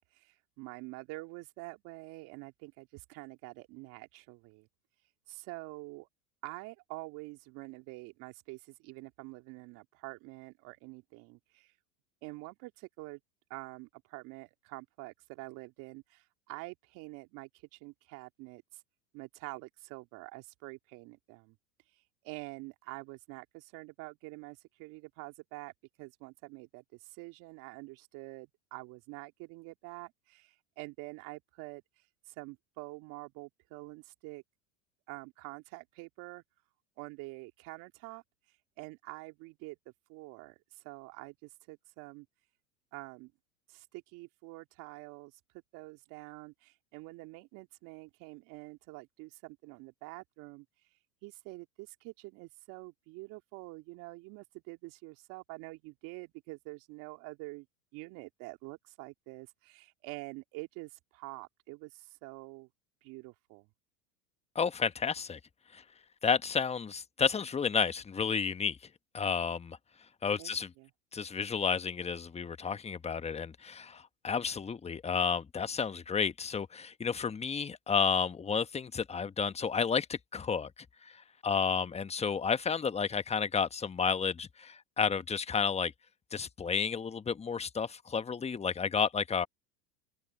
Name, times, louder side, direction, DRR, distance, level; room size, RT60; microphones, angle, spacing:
voice 1, 0.1-4.7 5.3-6.1 6.4-11.7 12.2-13.2 13.5-18.8 19.1-21.6 21.9-25.7 26.0-34.4 35.1-36.4 37.0-38.2 38.8-39.8 40.1-42.3 42.9-43.3 43.7-45.4 45.7-50.7 51.2-57.7 57.9-62.7 63.0-63.7 70.4-70.9, right 24 dB, 55° right, 2.4 m, -47 dB
voice 2, 64.5-65.4 65.7-65.8 66.2-68.8 69.1-69.8 70.2-70.7 71.1-80.7 81.0-85.9 86.3-89.5, left 6 dB, 15° left, 1.3 m, -31 dB
open air
hypercardioid pair, 100°, 38 cm